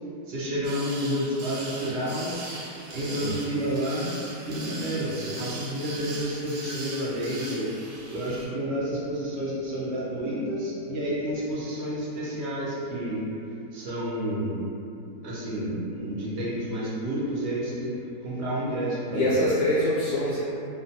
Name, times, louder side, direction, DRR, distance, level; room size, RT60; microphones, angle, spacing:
voice 1, 0.3-2.3 2.9-4.1 4.4-13.3 13.7-14.6 15.2-18.0 18.2-19.5, equal, 65° right, -8 dB, 0.7 m, -30 dB
sound 1, 0.6-8.5, right 2 dB, 80° right, 1.1 m, -40 dB
voice 2, 3.0-3.4 19.1-20.4, left 1 dB, 70° left, -11 dB, 0.6 m, -25 dB
2.5 x 2.3 x 2.6 m, 2.7 s
omnidirectional pair, 1.7 m